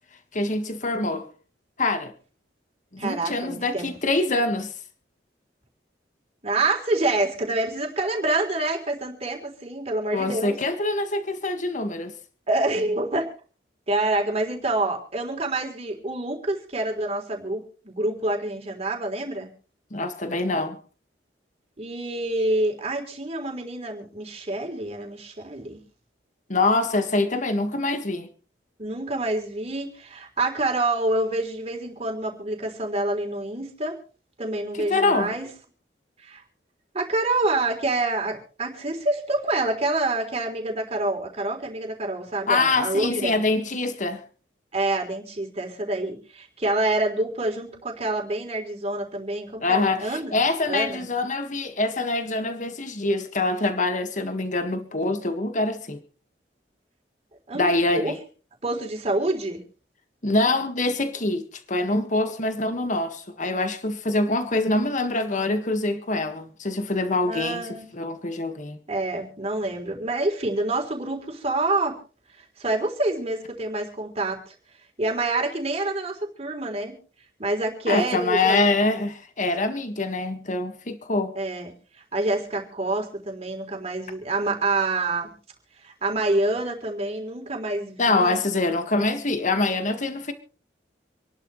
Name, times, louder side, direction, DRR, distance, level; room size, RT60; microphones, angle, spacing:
voice 1, 0.3-1.3 1.8-2.1 2.9-4.7 10.1-12.1 19.9-20.8 26.5-28.3 34.7-35.3 42.5-44.2 49.6-56.0 57.5-58.2 60.2-67.7 67.9-68.8 77.9-81.3 88.0-90.3, left 2 dB, 45° left, 1.8 m, -25 dB
voice 2, 3.0-3.9 6.4-10.6 12.5-13.3 13.9-19.5 21.8-25.8 28.8-34.0 34.4-35.5 36.2-36.4 36.9-43.4 44.7-50.4 50.7-51.1 57.5-58.2 58.6-59.6 67.3-67.8 68.9-72.0 72.4-74.5 75.0-77.0 77.4-78.7 81.4-81.7 82.1-85.3 85.8-88.4, right 2 dB, 35° right, 3.6 m, -27 dB
27.5 x 11.5 x 3.2 m
head